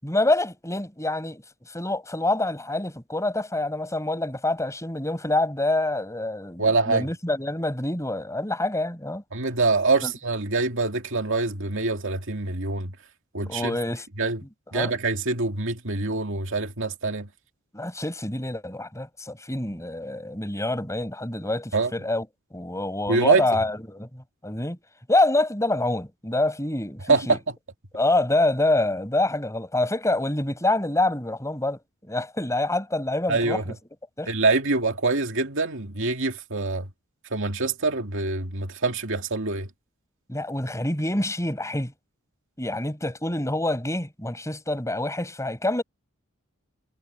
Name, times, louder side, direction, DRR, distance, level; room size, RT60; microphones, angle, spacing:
voice 1, 0.0-1.4 1.7-9.2 10.0-10.1 13.5-14.1 14.7-14.9 17.7-22.3 22.5-24.8 25.1-27.4 27.9-33.7 34.2-34.3 40.3-41.9 42.6-45.8, left 2 dB, 15° left, 6.8 m, -26 dB
voice 2, 6.6-7.1 9.3-12.9 13.3-13.8 14.2-14.4 14.7-17.3 21.7-21.9 23.1-23.5 27.1-27.4 33.3-33.6 34.3-36.9 37.3-39.7, right 3 dB, 65° right, 2.4 m, -24 dB
head